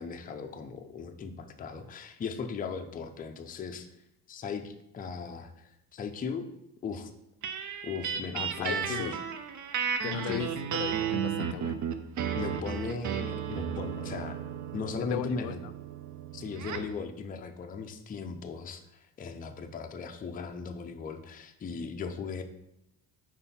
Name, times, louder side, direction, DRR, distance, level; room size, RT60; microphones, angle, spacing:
voice 1, 0.0-3.9 4.3-6.5 6.8-7.1 7.8-9.2 10.3-10.5 12.3-14.4 14.7-15.6 16.3-22.4, left 5 dB, 25° left, 5 dB, 0.4 m, -38 dB
sound 1, 7.4-17.0, right 8 dB, 50° right, 0.5 m, -34 dB
voice 2, 8.3-9.2 10.0-11.8 15.1-15.5, left 11 dB, 85° left, 12 dB, 0.5 m, -36 dB
5.7 x 4.4 x 4.2 m, 0.84 s
cardioid pair, 150°, 40 cm